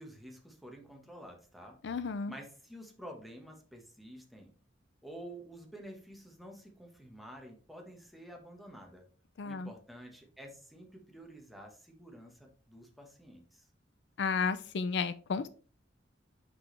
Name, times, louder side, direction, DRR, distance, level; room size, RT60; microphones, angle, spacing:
voice 1, 0.0-1.8 2.3-4.5 5.0-9.1 9.4-13.7, right 1 dB, ahead, 1 dB, 1.3 m, -50 dB
voice 2, 1.8-2.3 9.4-9.7 14.2-15.5, left 5 dB, 65° left, 13 dB, 0.4 m, -32 dB
6.1 x 5.7 x 3.3 m, 0.39 s
head